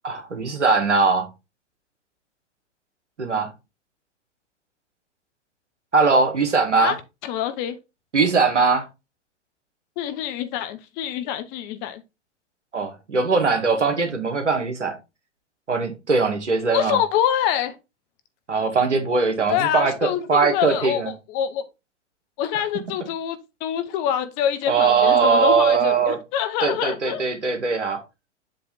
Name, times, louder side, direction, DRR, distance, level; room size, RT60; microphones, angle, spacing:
voice 1, 0.0-1.3 3.2-3.5 5.9-6.9 8.1-8.8 12.7-14.9 15.7-17.0 18.5-21.1 24.7-26.2 26.6-28.0, right 4 dB, 75° right, 1.7 m, -20 dB
voice 2, 7.2-7.8 10.0-12.0 16.7-17.8 19.5-21.0 21.3-21.6 22.4-27.2, left 10 dB, 30° left, 0.8 m, -25 dB
7.6 x 3.4 x 4.2 m
figure-of-eight pair, 105°, 36 cm